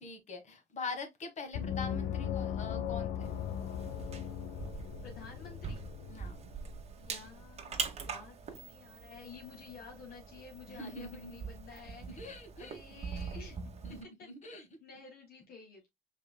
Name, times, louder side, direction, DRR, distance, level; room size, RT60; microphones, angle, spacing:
voice 1, 0.0-3.4 6.1-6.4 10.7-11.5 12.0-13.0 13.8-14.7, left 3 dB, 45° left, 1.5 m, -44 dB
Gong, 1.5-6.8, left 9 dB, 80° left, 0.7 m, -38 dB
sound 1, 3.2-14.0, right 5 dB, 40° right, 1.1 m, -44 dB
voice 2, 5.0-5.9 7.0-13.6 13.9-15.9, left 5 dB, 65° left, 1.6 m, -52 dB
5.1 x 4.1 x 2.2 m
cardioid pair, 110°, 17 cm